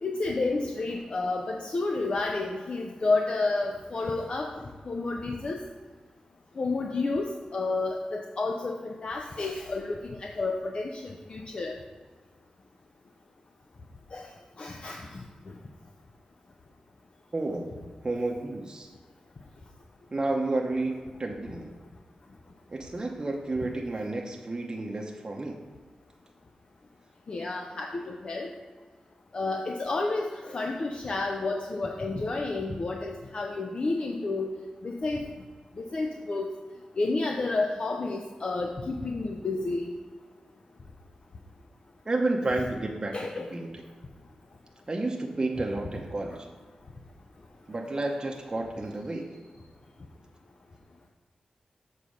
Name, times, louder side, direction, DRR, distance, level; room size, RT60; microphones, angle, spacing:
voice 1, 0.0-4.5 4.8-5.6 6.6-11.8 14.1-14.3 14.6-15.2 27.3-28.5 29.3-34.5 34.8-35.2 35.8-36.5 37.0-39.8 43.1-43.5, left 3 dB, 50° left, 1 dB, 0.7 m, -30 dB
voice 2, 17.3-18.9 20.1-21.7 22.7-25.6 42.1-43.1 43.5-43.8 44.9-46.4 47.7-49.4, right 2 dB, 35° right, 1 dB, 0.8 m, -31 dB
7.1 x 4.2 x 6.4 m, 1.5 s
wide cardioid pair, 95°, 2 cm